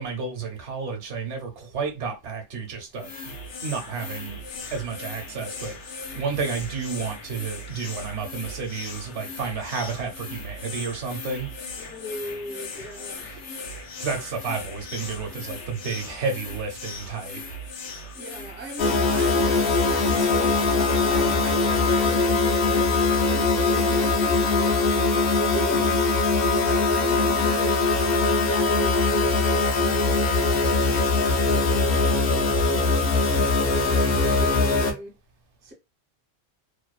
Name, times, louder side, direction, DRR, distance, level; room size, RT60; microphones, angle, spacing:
voice 1, 0.0-3.3 3.6-4.4 4.7-11.5 13.3-13.5 14.0-17.6 25.5-25.9, right 5 dB, 80° right, 1.0 m, -31 dB
sound 1, 3.0-20.7, left 3 dB, 90° left, 0.9 m, -38 dB
voice 2, 11.8-13.3 18.1-20.6 21.0-24.9 25.4-26.0 26.3-33.0 33.3-35.2 35.6-35.7, equal, 15° right, 0.4 m, -39 dB
sound 2, 18.8-34.9, left 3 dB, 60° left, 0.7 m, -21 dB
2.6 x 2.1 x 2.3 m
omnidirectional pair, 1.2 m